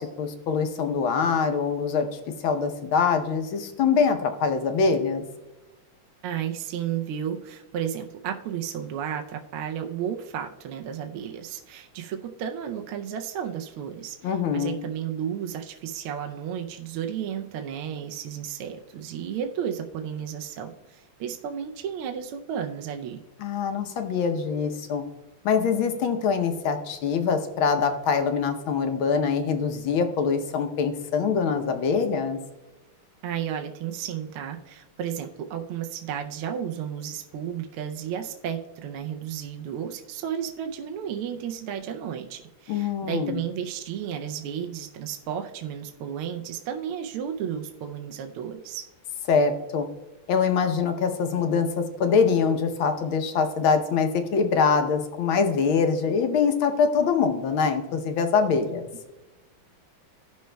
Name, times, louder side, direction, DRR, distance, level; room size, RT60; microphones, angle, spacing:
voice 1, 0.0-2.1 2.4-5.2 14.2-14.8 23.4-25.0 25.4-32.4 42.7-43.4 49.3-49.9 50.3-58.9, left 5 dB, 70° left, 6 dB, 1.6 m, -24 dB
voice 2, 6.2-23.2 33.2-48.8, right 9 dB, 80° right, 4 dB, 1.5 m, -33 dB
17.0 x 6.2 x 2.2 m, 1.0 s
omnidirectional pair, 2.4 m